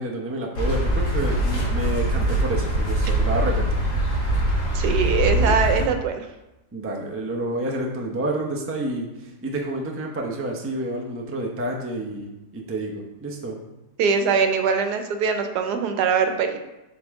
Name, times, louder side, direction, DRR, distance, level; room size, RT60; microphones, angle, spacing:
voice 1, 0.0-3.8 5.4-5.6 6.7-13.6, right 1 dB, 20° right, 0 dB, 0.4 m, -29 dB
sound 1, 0.5-5.9, right 1 dB, 85° left, 2.3 m, -23 dB
voice 2, 4.7-6.2 14.0-16.6, right 5 dB, 90° right, 7 dB, 1.3 m, -22 dB
7.6 x 4.2 x 3.6 m, 0.99 s
omnidirectional pair, 1.7 m